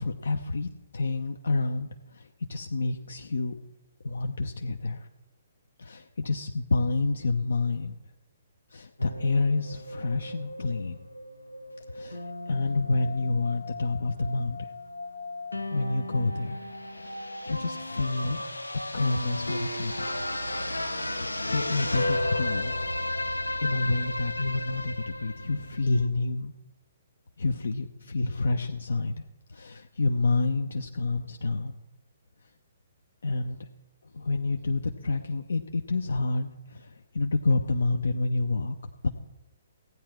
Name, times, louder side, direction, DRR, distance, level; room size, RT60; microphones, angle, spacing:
voice 1, 0.0-3.6 4.0-5.1 5.8-8.0 8.7-11.0 11.9-14.7 15.7-18.4 18.9-20.3 21.2-22.7 23.6-26.5 27.4-29.2 29.5-31.8 33.2-33.7 34.1-38.7 39.0-39.1, left 3 dB, 65° left, 5 dB, 0.7 m, -29 dB
sound 1, 9.0-26.1, left 1 dB, 85° left, 0.9 m, -34 dB
16.0 x 9.4 x 4.5 m, 0.97 s
figure-of-eight pair, 125°, 0 cm